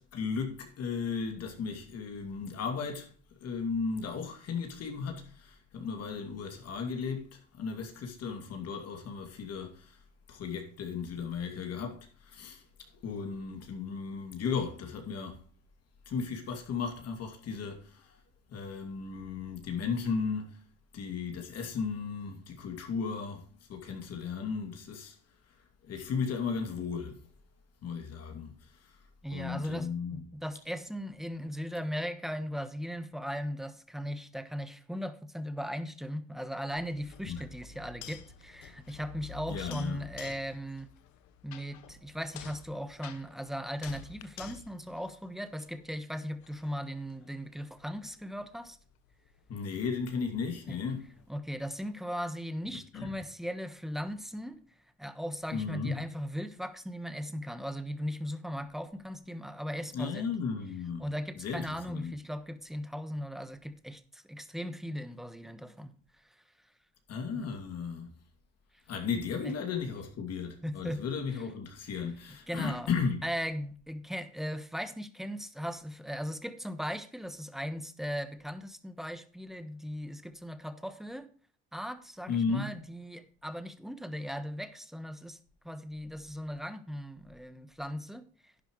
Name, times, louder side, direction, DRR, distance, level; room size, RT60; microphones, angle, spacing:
voice 1, 0.0-3.1 3.4-10.0 10.3-12.6 13.0-15.4 16.1-18.2 18.5-20.6 20.9-25.2 25.8-27.2 27.8-29.0 29.3-30.2 37.3-37.4 39.5-40.0 49.5-51.1 52.6-53.1 55.5-56.0 59.9-61.0 61.4-62.1 67.1-68.1 68.9-73.2 82.3-82.7, left 5 dB, 60° left, 2.6 m, -35 dB
voice 2, 29.2-40.9 41.4-48.8 50.7-50.8 51.3-54.6 55.0-60.3 61.0-65.9 67.3-67.5 69.4-69.5 70.6-71.1 72.5-72.9 73.2-81.3 81.7-85.4 85.6-88.5, equal, ahead, 1.2 m, -38 dB
sound 1, 36.7-45.9 46.4-51.3, left 8 dB, 85° left, 1.2 m, -50 dB
11.5 x 9.9 x 3.2 m
cardioid pair, 110°, 29 cm